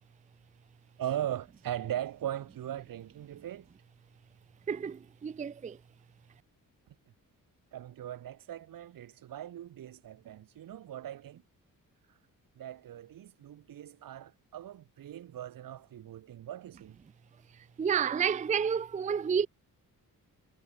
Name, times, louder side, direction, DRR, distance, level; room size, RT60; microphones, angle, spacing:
voice 1, 1.0-3.7 7.7-11.4 12.6-17.0, right 11 dB, 85° right, 4.5 m, -39 dB
voice 2, 4.7-5.8 17.8-19.5, right 7 dB, 25° right, 0.5 m, -30 dB
wide cardioid pair, 160°, 33 cm